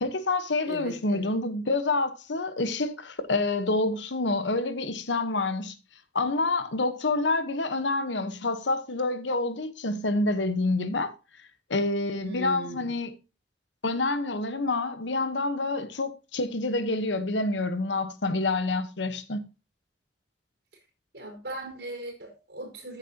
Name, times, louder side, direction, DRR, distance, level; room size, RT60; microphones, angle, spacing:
voice 1, 0.0-5.8 6.1-11.1 11.7-13.2 13.8-19.4, left 2 dB, 85° left, 1.1 m, -27 dB
voice 2, 0.7-1.3 12.2-12.9 21.1-23.0, right 1 dB, 65° right, 4.7 m, -38 dB
14.0 x 7.6 x 2.9 m
head